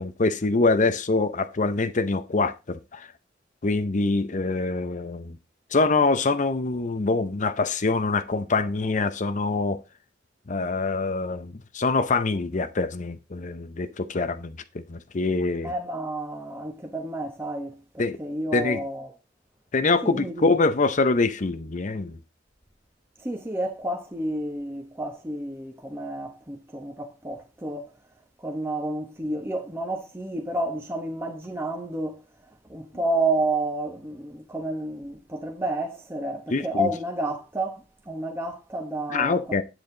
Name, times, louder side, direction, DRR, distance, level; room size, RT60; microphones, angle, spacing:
voice 1, 0.0-3.1 3.6-5.4 5.7-9.8 10.5-14.6 14.9-15.7 18.0-18.2 18.5-18.8 19.7-22.2 36.5-36.9 39.1-39.6, left 3 dB, 40° left, 0.7 m, -24 dB
voice 2, 15.6-19.1 20.0-20.6 23.2-27.9 28.4-32.2 32.7-39.4, right 1 dB, 15° right, 1.1 m, -30 dB
9.0 x 7.9 x 3.9 m
head